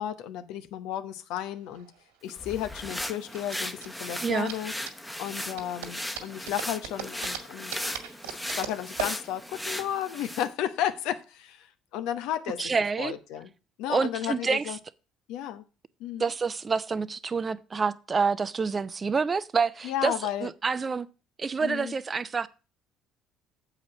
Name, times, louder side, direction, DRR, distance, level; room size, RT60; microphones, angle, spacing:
voice 1, 0.0-1.9 2.2-4.7 5.2-8.0 8.5-12.7 13.0-13.5 13.8-14.8 15.3-15.6 16.0-16.3 19.8-20.5 21.6-21.9, left 11 dB, 70° left, 1.0 m, -33 dB
sound 1, 1.5-10.4, right 9 dB, 80° right, 2.0 m, -41 dB
sound 2, 2.3-10.5, left 1 dB, 5° left, 1.2 m, -37 dB
voice 2, 12.6-13.1 13.9-14.6 16.2-20.1 20.4-21.1 21.4-22.5, right 5 dB, 35° right, 0.7 m, -27 dB
7.9 x 5.1 x 7.4 m
hypercardioid pair, 55°, 0 cm